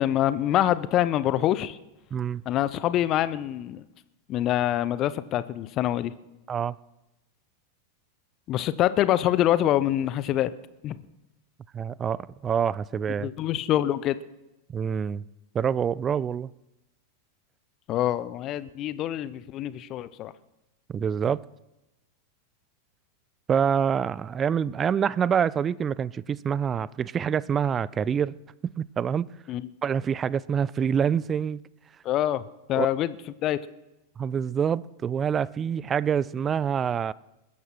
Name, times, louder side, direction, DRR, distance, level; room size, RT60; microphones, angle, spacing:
voice 1, 0.0-1.8 2.5-3.8 4.3-6.1 8.5-10.5 10.8-11.0 13.2-14.2 17.9-20.3 29.5-29.7 32.0-32.4 32.7-33.2 33.4-33.6, left 12 dB, 35° left, 0.7 m, -25 dB
voice 2, 2.1-2.4 6.5-6.8 11.7-13.3 14.7-15.2 15.5-16.5 20.9-21.4 23.5-28.4 28.6-29.3 29.8-31.6 32.8-32.9 34.2-37.1, right 7 dB, 25° right, 0.4 m, -26 dB
20.5 x 10.5 x 4.4 m
figure-of-eight pair, 90°, 0 cm